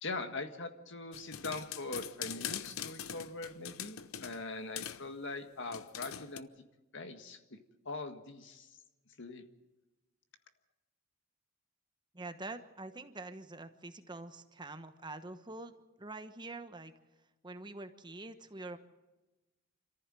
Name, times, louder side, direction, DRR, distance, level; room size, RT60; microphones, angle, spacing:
voice 1, 0.0-6.5 6.9-8.8 9.2-9.4, left 3 dB, 60° left, 8 dB, 1.7 m, -42 dB
sound 1, 1.1-4.4 4.8-5.0 5.7-6.4, left 9 dB, 90° left, 0.8 m, -42 dB
voice 2, 12.1-15.7 16.0-16.9 17.4-18.8, right 2 dB, 20° right, 9 dB, 1.1 m, -45 dB
26.5 x 14.5 x 7.6 m, 1.1 s
head